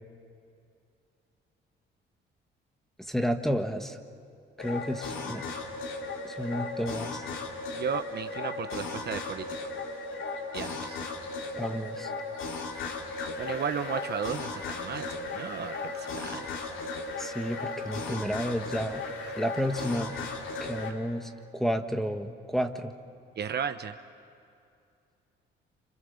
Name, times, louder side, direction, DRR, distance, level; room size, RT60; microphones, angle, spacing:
voice 1, 3.0-4.0 4.6-5.4 6.2-7.2 11.6-12.1 17.2-19.0 19.4-20.2 20.6-22.9, equal, ahead, 6 dB, 1.6 m, -31 dB
sound 1, 4.6-20.9, left 3 dB, 85° left, 2.8 m, -36 dB
voice 2, 7.7-9.5 10.5-11.0 13.4-16.7 19.2-19.3 23.4-23.9, right 7 dB, 55° right, 8 dB, 1.1 m, -34 dB
29.5 x 26.0 x 7.3 m, 2.5 s
cardioid pair, 90°, 20 cm